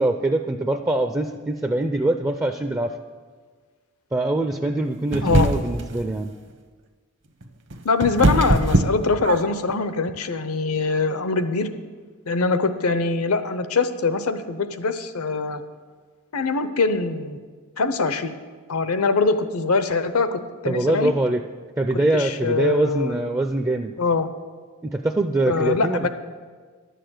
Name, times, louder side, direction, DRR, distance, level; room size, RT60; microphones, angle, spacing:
voice 1, 0.0-2.9 4.1-6.3 20.7-21.4 21.8-23.9 24.8-26.1, right 2 dB, 15° right, 5 dB, 0.4 m, -23 dB
sound 1, 5.1-5.9 7.4-9.7, right 1 dB, 60° right, 0.9 m, -21 dB
voice 2, 7.8-11.7 12.3-15.6 16.3-17.4 17.8-18.4 18.7-21.1 22.1-23.1 24.0-24.3 25.5-26.1, left 4 dB, 75° left, 11 dB, 0.7 m, -23 dB
11.5 x 6.7 x 7.8 m, 1.5 s
head